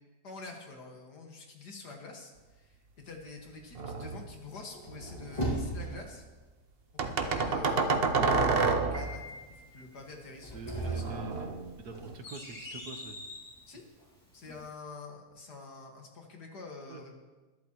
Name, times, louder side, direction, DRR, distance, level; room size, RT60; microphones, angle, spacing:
voice 1, 0.2-2.8 3.0-6.2 7.0-9.2 9.5-11.1 13.7-13.8 14.3-17.1, left 3 dB, 75° left, 1 dB, 2.4 m, -47 dB
sound 1, 3.8-4.3 4.9-5.8 7.0-9.2 10.7-12.1, right 4 dB, 50° right, 0.7 m, -30 dB
sound 2, 4.7-6.2 10.3-13.6, right 1 dB, 25° left, 2.3 m, -38 dB
Piano, 8.9-14.8, left 2 dB, 5° left, 2.6 m, -52 dB
voice 2, 10.5-13.2 16.9-17.0, right 3 dB, 70° right, 5 dB, 1.7 m, -45 dB
21.0 x 11.5 x 3.0 m, 1.2 s
omnidirectional pair, 1.8 m